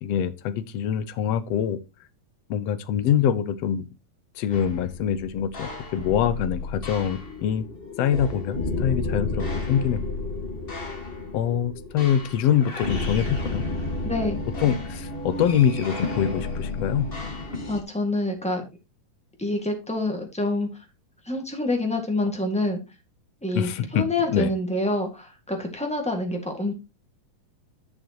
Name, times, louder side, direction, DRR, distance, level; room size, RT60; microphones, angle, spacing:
voice 1, 0.0-1.8 2.5-3.9 4.4-7.6 8.0-10.0 11.3-13.6 14.6-17.1 23.5-24.0 24.3-24.5, left 9 dB, 80° left, 13 dB, 1.4 m, -24 dB
sound 1, 4.5-17.8, left 2 dB, 55° left, 0.6 m, -32 dB
voice 2, 14.0-14.4 17.7-18.6 19.4-20.7 21.2-22.8 23.4-26.7, left 2 dB, 5° left, 3 dB, 0.5 m, -27 dB
11.0 x 7.4 x 2.9 m, 0.26 s
omnidirectional pair, 3.9 m